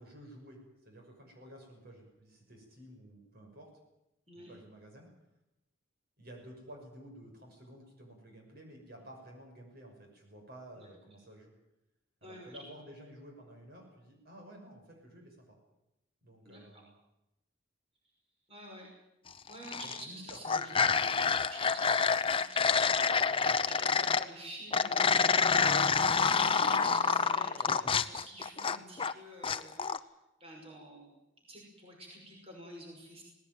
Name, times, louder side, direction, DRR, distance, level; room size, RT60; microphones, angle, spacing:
voice 1, 0.0-3.7 4.3-5.1 6.2-11.5 12.2-15.6 16.2-16.9 19.8-21.0, right 1 dB, 50° right, 1 dB, 6.3 m, -52 dB
voice 2, 4.3-4.6 10.8-10.9 12.2-12.6 16.5-16.8 18.5-18.9 19.5-20.7 21.0-21.1 21.5-22.7 23.6-25.4 26.3-30.0 30.4-31.1 31.5-33.2, right 1 dB, 30° right, 0 dB, 5.9 m, -49 dB
sound 1, 19.5-20.0 20.3-24.3 24.7-29.1 29.4-30.0, left 5 dB, 25° left, 0.7 m, -28 dB
19.0 x 18.5 x 9.4 m, 0.91 s
head